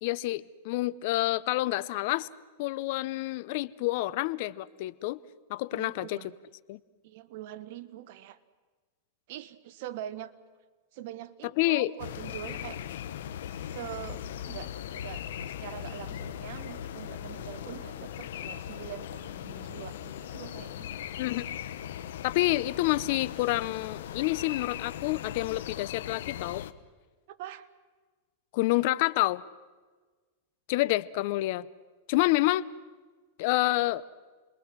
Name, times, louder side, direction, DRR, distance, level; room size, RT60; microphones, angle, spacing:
voice 1, 0.0-2.3 2.6-5.2 5.5-6.2 6.7-6.8 11.6-11.9 21.2-21.4 22.2-26.7 28.5-29.4 30.7-31.7 32.1-32.7 33.4-34.0, left 18 dB, 55° left, 18 dB, 0.7 m, -28 dB
voice 2, 5.7-6.4 7.0-8.4 9.3-10.3 10.9-12.8 13.5-20.9 27.3-27.7, right 12 dB, 60° right, 12 dB, 1.3 m, -43 dB
sound 1, 12.0-26.7, left 10 dB, 75° left, 1.1 m, -39 dB
29.0 x 21.5 x 6.1 m, 1.4 s
hypercardioid pair, 130°, 0 cm